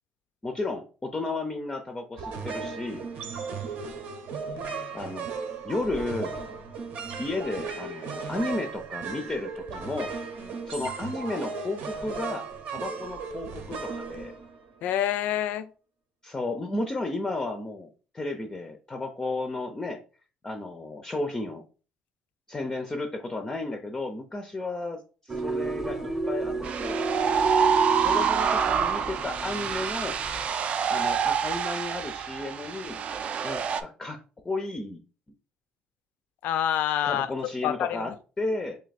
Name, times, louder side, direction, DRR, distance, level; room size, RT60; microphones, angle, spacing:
voice 1, 0.4-3.0 4.9-5.3 5.6-6.4 7.2-10.1 10.6-14.3 16.2-20.0 20.4-21.6 22.5-27.0 28.0-30.2 30.9-33.0 33.4-34.2 34.4-35.0 37.0-38.8, left 2 dB, 15° left, 5 dB, 0.4 m, -33 dB
sound 1, 2.2-14.9, right 5 dB, 70° right, 0.7 m, -36 dB
voice 2, 14.8-15.7 36.4-37.3 37.6-38.2, left 11 dB, 75° left, 13 dB, 0.4 m, -27 dB
sound 2, 25.3-30.5, right 3 dB, 15° right, 0.7 m, -31 dB
sound 3, 26.6-33.8, right 7 dB, 45° right, 0.4 m, -27 dB
3.3 x 2.7 x 4.0 m, 0.36 s
cardioid pair, 140°, 3 cm